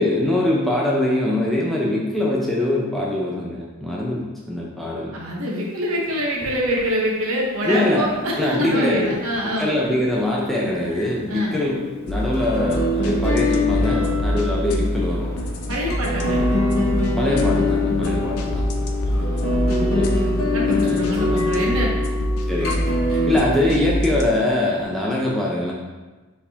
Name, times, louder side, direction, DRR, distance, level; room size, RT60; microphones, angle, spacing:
voice 1, 0.0-5.1 7.6-9.1 9.4-11.8 12.0-15.3 16.3-16.5 17.2-18.7 19.7-20.1 20.7-21.6 22.5-22.8 23.1-25.7, left 1 dB, ahead, -5 dB, 0.5 m, -23 dB
voice 2, 5.1-9.7 11.3-11.6 13.9-14.2 15.7-16.5 19.0-20.1 20.5-22.1, equal, 70° right, -2 dB, 0.9 m, -25 dB
Microwave oven, 5.5-24.9, left 1 dB, 25° left, 0.9 m, -40 dB
sound 1, 11.7-23.4, left 2 dB, 65° left, 0.9 m, -24 dB
sound 2, 12.1-24.3, equal, 90° left, 0.5 m, -25 dB
4.5 x 3.4 x 2.8 m, 1.2 s
head